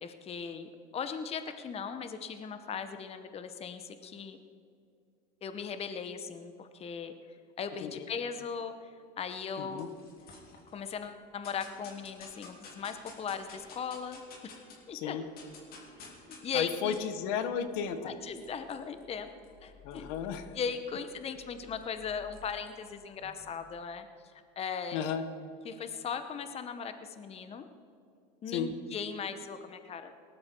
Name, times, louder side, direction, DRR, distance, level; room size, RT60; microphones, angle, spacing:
voice 1, 0.0-4.4 5.4-7.1 7.6-8.9 9.2-9.9 10.7-14.6 14.9-15.2 16.0-17.0 18.0-19.3 19.6-20.1 20.5-24.1 24.6-25.1 25.6-27.6 28.4-30.1, left 6 dB, 30° left, 9 dB, 0.9 m, -38 dB
sound 1, 9.3-10.9 11.4-14.9 15.2-23.7, left 4 dB, 45° left, 3.2 m, -54 dB
voice 2, 9.6-9.9 14.9-15.2 16.5-18.1 19.8-20.5 24.9-25.2 28.5-28.7, left 8 dB, 70° left, 10 dB, 1.2 m, -34 dB
19.0 x 12.0 x 4.5 m, 2.4 s
supercardioid pair, 110°, 21 cm